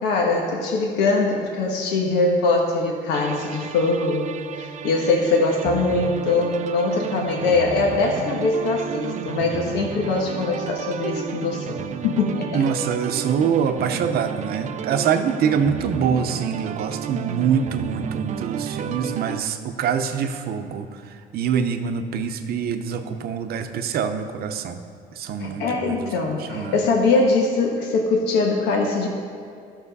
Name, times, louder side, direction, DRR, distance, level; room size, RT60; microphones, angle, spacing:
voice 1, 0.0-4.3 4.6-12.7 25.4-29.1, left 3 dB, 85° left, 0 dB, 1.3 m, -22 dB
sound 1, 3.1-19.4, right 8 dB, 45° right, 0.4 m, -32 dB
voice 2, 12.5-20.9 21.3-24.8 25.2-26.1 26.5-26.8, right 7 dB, 65° right, 8 dB, 0.8 m, -24 dB
13.0 x 6.2 x 4.1 m, 2.3 s
cardioid pair, 110°, 17 cm